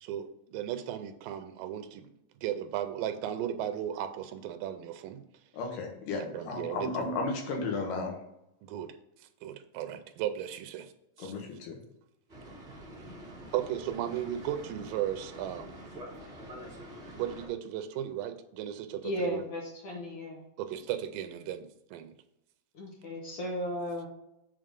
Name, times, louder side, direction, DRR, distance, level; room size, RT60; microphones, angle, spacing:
voice 1, 0.0-2.1 2.4-5.2 6.2-7.1 8.6-8.9 9.4-10.9 11.2-11.3 13.5-16.0 17.2-19.4 20.6-22.1, right 10 dB, 90° right, 9 dB, 2.3 m, -36 dB
voice 2, 5.5-8.2 11.2-11.8, left 3 dB, 90° left, 2 dB, 3.0 m, -34 dB
Boat Water vehicle, 12.3-17.5, equal, 25° right, 2.0 m, -46 dB
voice 3, 19.0-20.4 22.8-24.1, left 1 dB, 60° left, 0 dB, 1.6 m, -35 dB
7.7 x 3.7 x 5.2 m, 0.84 s
omnidirectional pair, 3.8 m